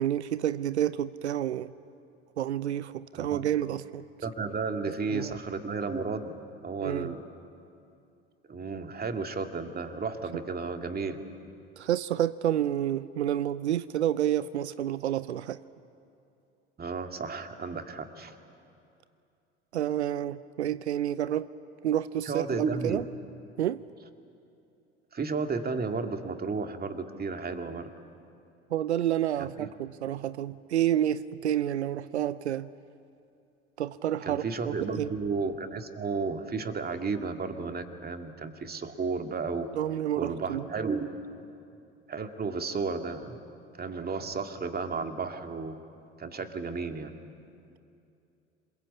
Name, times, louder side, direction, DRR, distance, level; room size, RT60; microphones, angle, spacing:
voice 1, 0.0-1.7 2.4-4.0 5.1-5.3 6.8-7.1 11.8-15.6 19.7-21.5 21.8-23.0 23.6-23.8 28.7-32.7 33.8-35.1 39.8-40.7, right 11 dB, 90° right, 16 dB, 0.5 m, -29 dB
voice 2, 3.1-3.5 4.2-6.4 6.6-7.2 8.5-11.2 16.8-18.3 22.3-23.0 25.1-27.9 29.4-29.7 34.2-39.7 40.2-41.1 42.1-43.4 43.8-45.8 46.2-47.1, right 4 dB, 30° right, 5 dB, 2.3 m, -33 dB
27.0 x 22.0 x 8.6 m, 2.6 s
hypercardioid pair, 65°, 33 cm